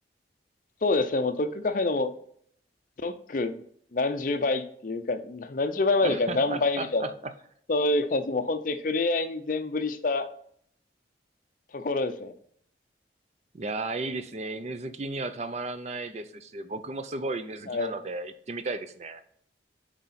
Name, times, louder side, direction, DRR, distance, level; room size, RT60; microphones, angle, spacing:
voice 1, 0.8-2.1 3.0-3.6 3.9-7.1 7.7-10.3 11.7-12.3 17.7-17.9, left 3 dB, 45° left, 10 dB, 0.5 m, -27 dB
voice 2, 6.0-7.3 13.5-19.2, right 3 dB, 35° right, 11 dB, 0.5 m, -34 dB
7.8 x 4.8 x 4.1 m, 0.65 s
head